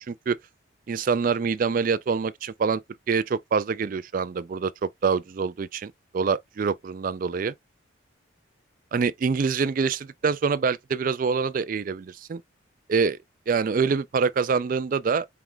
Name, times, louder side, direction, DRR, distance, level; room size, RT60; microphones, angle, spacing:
voice 1, 0.9-2.8 3.1-7.5 8.9-12.4 12.9-13.2 13.5-15.3, right 5 dB, 45° right, 0.3 m, -25 dB
4.6 x 2.2 x 3.8 m
head